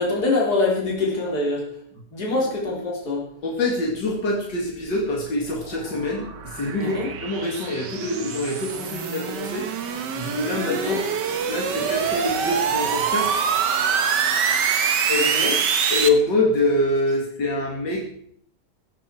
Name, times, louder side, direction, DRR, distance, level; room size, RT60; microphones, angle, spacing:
voice 1, 0.0-1.6 2.1-3.2 6.8-7.1 10.2-10.3 10.6-11.0 15.1-15.5, left 2 dB, 65° left, -3 dB, 4.2 m, -24 dB
voice 2, 3.4-9.7 10.2-11.0 11.5-13.3 14.6-14.8 15.1-15.6 15.9-18.0, left 2 dB, 90° left, -1 dB, 3.0 m, -25 dB
sound 1, 4.8-16.1, right 7 dB, 85° right, 1.9 m, -25 dB
16.5 x 13.0 x 4.5 m, 0.66 s
omnidirectional pair, 1.8 m